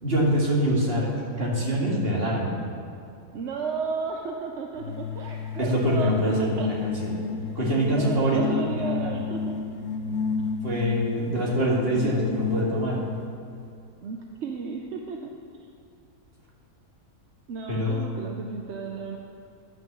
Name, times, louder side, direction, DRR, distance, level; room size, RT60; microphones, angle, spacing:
voice 1, 0.0-1.1 1.4-2.6 5.6-7.1 7.5-8.4 8.8-9.1 10.6-13.0 17.7-18.1, equal, 40° right, -4 dB, 2.2 m, -24 dB
voice 2, 3.3-6.7 7.9-9.5 14.0-15.3 17.5-19.2, right 5 dB, 55° right, 1 dB, 0.9 m, -33 dB
sound 1, 4.8-13.4, left 5 dB, 90° left, 1.3 m, -32 dB
11.0 x 6.1 x 7.3 m, 2.5 s
omnidirectional pair, 1.6 m